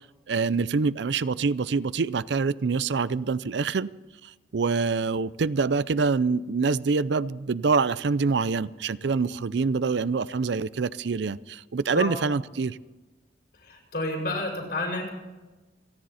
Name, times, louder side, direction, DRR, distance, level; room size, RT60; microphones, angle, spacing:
voice 1, 0.3-3.9 4.2-12.8, right 4 dB, 80° right, 18 dB, 0.5 m, -25 dB
voice 2, 13.6-15.1, left 2 dB, 60° left, 0 dB, 5.5 m, -30 dB
28.0 x 10.5 x 4.2 m, 1.2 s
head